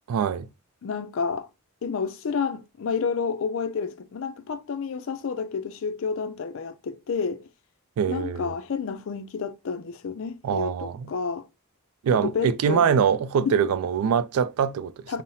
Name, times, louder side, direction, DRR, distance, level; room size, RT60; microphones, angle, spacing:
voice 1, 0.1-0.5 8.0-8.5 10.4-11.1 12.0-15.2, right 7 dB, 80° right, 0.3 m, -24 dB
voice 2, 0.8-1.5 1.8-7.5 8.1-11.5 12.1-13.0 13.5-13.6 15.1-15.2, left 5 dB, 60° left, 0.4 m, -30 dB
5.4 x 2.0 x 2.6 m
head